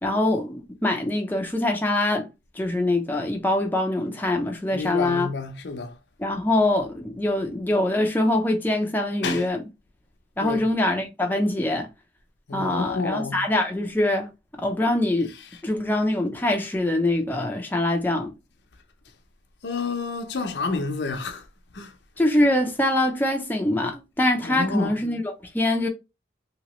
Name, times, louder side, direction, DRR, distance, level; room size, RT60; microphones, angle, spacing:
voice 1, 0.0-2.3 2.6-5.3 6.2-9.6 10.4-11.9 12.5-14.3 14.6-15.3 15.6-18.3 22.2-25.9, left 1 dB, 10° left, 0.5 m, -24 dB
voice 2, 4.7-5.9 9.2-9.5 10.4-10.6 12.5-13.4 19.6-21.5 21.7-21.9 24.4-25.0, left 4 dB, 80° left, 0.7 m, -29 dB
2.9 x 2.9 x 2.9 m
head